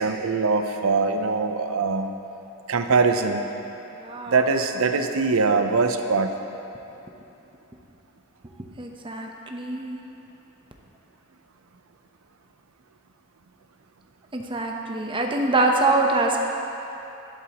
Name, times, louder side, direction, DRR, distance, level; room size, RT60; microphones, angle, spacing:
voice 1, 0.0-2.1 2.7-3.4 4.3-6.3, right 4 dB, 80° right, 6 dB, 0.6 m, -22 dB
voice 2, 4.0-4.4 8.8-10.0 14.3-16.4, right 2 dB, 25° right, 1 dB, 0.8 m, -24 dB
11.5 x 11.5 x 3.0 m, 2.8 s
head